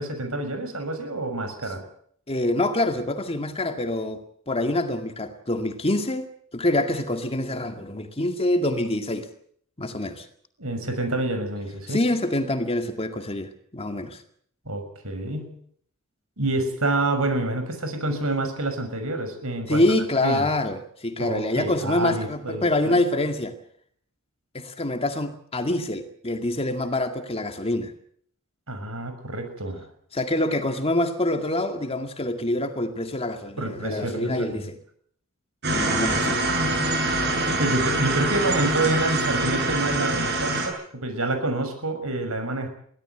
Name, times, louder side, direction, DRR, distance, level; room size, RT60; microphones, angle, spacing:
voice 1, 0.0-1.8 10.6-12.0 14.6-15.5 16.4-19.8 20.2-20.5 21.2-23.0 28.7-29.8 33.6-34.6 35.8-36.5 37.6-42.7, right 2 dB, 70° right, 6.5 m, -28 dB
voice 2, 2.3-9.3 9.8-10.3 11.9-14.2 19.7-23.6 24.5-27.9 30.1-34.8 35.7-36.4, left 1 dB, 25° left, 2.2 m, -26 dB
sound 1, 35.6-40.7, right 2 dB, 50° right, 7.9 m, -24 dB
23.0 x 17.5 x 8.1 m
head